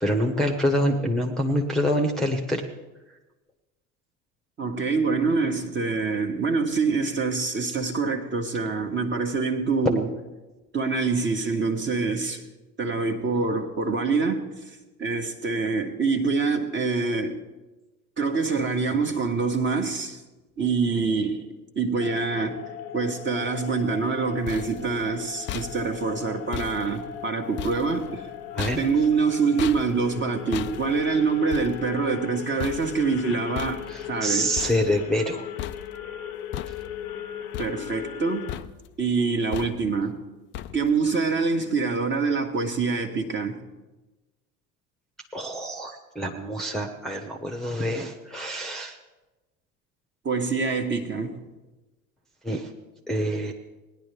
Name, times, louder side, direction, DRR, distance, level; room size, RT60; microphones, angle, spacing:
voice 1, 0.0-2.6 28.5-28.8 33.9-35.5 45.3-48.9 52.4-52.7 53.1-53.5, equal, ahead, 3 dB, 1.1 m, -26 dB
voice 2, 4.6-10.1 10.7-12.4 12.8-14.4 15.0-17.4 18.2-20.2 20.6-21.4 21.7-22.6 22.9-28.3 28.8-33.8 34.1-34.7 37.6-38.5 39.0-40.2 40.7-43.6 50.2-51.4, right 4 dB, 25° right, 4 dB, 1.4 m, -25 dB
sound 1, 22.0-38.6, left 10 dB, 70° left, 0.9 m, -38 dB
sound 2, 24.1-35.3 35.6-36.2 36.5-37.2 37.5-38.2 38.5-39.0 39.5-40.1 40.5-41.1, left 11 dB, 30° left, 0.4 m, -39 dB
18.5 x 10.5 x 3.4 m, 1.1 s
figure-of-eight pair, 70°, 44 cm